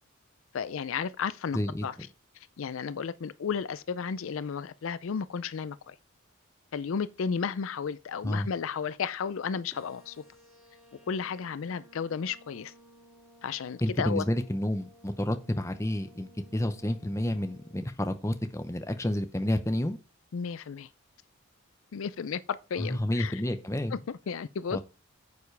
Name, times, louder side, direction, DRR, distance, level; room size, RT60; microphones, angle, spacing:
voice 1, 0.5-1.9 2.3-6.0 6.7-10.2 11.1-12.7 13.4-14.2 20.3-20.9 21.9-23.4 23.9-24.8, left 6 dB, 70° left, 0.4 m, -33 dB
voice 2, 1.5-1.9 8.2-8.5 13.8-20.0 22.8-24.0 24.7-24.8, left 1 dB, 15° left, 0.7 m, -30 dB
sound 1, 9.7-17.7, equal, 5° right, 3.2 m, -57 dB
9.4 x 7.1 x 3.3 m
head